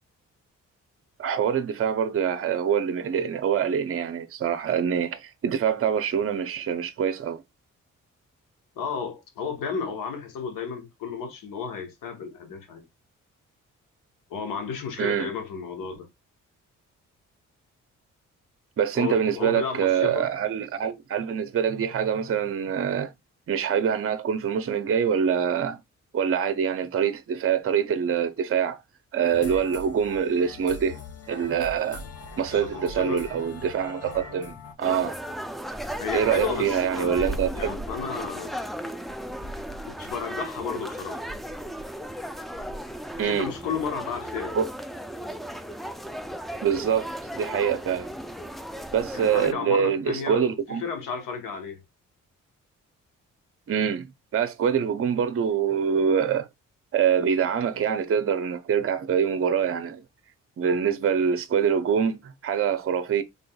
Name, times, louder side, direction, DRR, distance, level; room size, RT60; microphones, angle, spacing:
voice 1, 1.2-7.4 15.0-15.3 18.8-23.1 23.5-25.8 26.1-28.8 29.1-31.0 31.3-32.0 32.4-35.1 36.1-37.7 43.2-43.5 44.5-44.7 46.6-48.1 48.9-50.8 53.7-56.5 56.9-60.0 60.6-63.2, right 7 dB, 45° right, 0.6 m, -25 dB
voice 2, 8.7-12.8 14.3-16.1 18.9-20.3 32.5-33.2 36.0-38.6 39.9-41.3 43.2-44.6 49.1-51.8, left 6 dB, 85° left, 1.1 m, -33 dB
sound 1, 29.2-34.7, left 3 dB, 45° left, 0.9 m, -41 dB
sound 2, 34.8-49.5, equal, ahead, 0.4 m, -35 dB
3.7 x 3.4 x 2.3 m
supercardioid pair, 55°, 32 cm